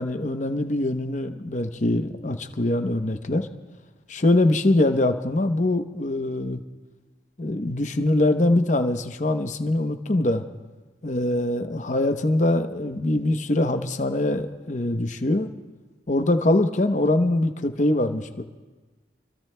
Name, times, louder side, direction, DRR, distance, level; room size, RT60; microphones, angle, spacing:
voice 1, 0.0-3.5 4.1-6.6 7.4-10.5 11.0-15.5 16.1-18.4, left 1 dB, 40° left, 7 dB, 0.8 m, -23 dB
29.0 x 23.0 x 2.2 m, 1.3 s
head